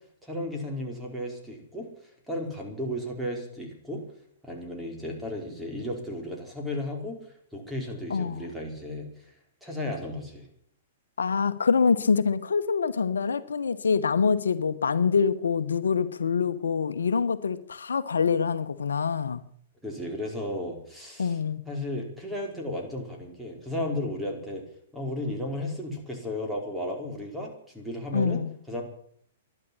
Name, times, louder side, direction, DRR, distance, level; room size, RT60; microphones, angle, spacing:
voice 1, 0.2-4.0 4.4-7.3 7.5-9.2 9.6-10.5 19.8-21.4 21.7-24.6 24.9-28.8, left 1 dB, 5° right, 4.8 m, -34 dB
voice 2, 8.1-8.4 11.2-19.4 21.2-21.6 28.1-28.5, left 5 dB, 85° left, 1.0 m, -25 dB
12.0 x 12.0 x 9.9 m
hypercardioid pair, 125°, 0 cm